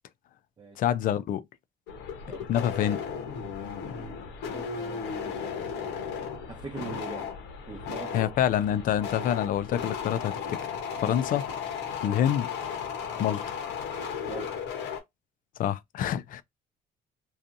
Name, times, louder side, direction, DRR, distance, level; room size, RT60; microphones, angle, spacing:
voice 1, 0.8-1.4 2.5-3.0 8.1-10.6 11.0-11.4 12.0-12.5 13.2-13.4 15.6-16.4, left 10 dB, 55° left, 0.4 m, -26 dB
sound 1, 1.9-15.0, left 6 dB, 90° left, 0.8 m, -35 dB
voice 2, 4.5-6.0 6.5-7.3 7.7-8.3 9.2-9.3 10.9-11.2 14.3-14.6, right 4 dB, 25° right, 0.6 m, -42 dB
2.6 x 2.4 x 2.5 m
cardioid pair, 110°, 17 cm